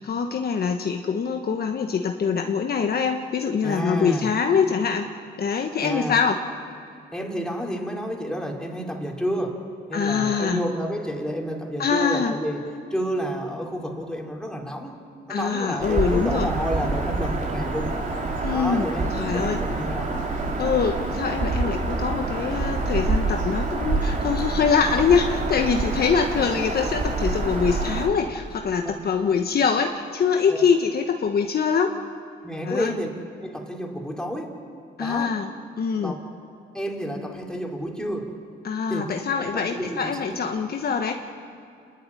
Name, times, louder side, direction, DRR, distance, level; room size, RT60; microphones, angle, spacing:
voice 1, 0.0-5.1 5.4-6.4 9.9-10.6 11.8-12.4 15.3-16.5 18.4-18.9 19.1-19.6 20.6-31.9 32.6-32.9 35.0-35.5 35.8-36.1 38.6-41.1, left 6 dB, 50° left, 4 dB, 1.3 m, -24 dB
voice 2, 3.6-4.3 5.8-6.2 7.1-15.0 15.3-17.9 18.5-20.1 28.8-28.9 30.5-30.6 32.4-33.1 33.4-34.6 35.0-35.3 35.9-36.1 36.7-38.4 38.9-39.0 39.4-40.4, equal, 5° left, 0 dB, 3.9 m, -30 dB
Bird vocalization bird call bird song, 15.8-28.1, right 2 dB, 40° right, 3.6 m, -26 dB
28.5 x 11.5 x 10.0 m, 2.5 s
cardioid pair, 90°, 20 cm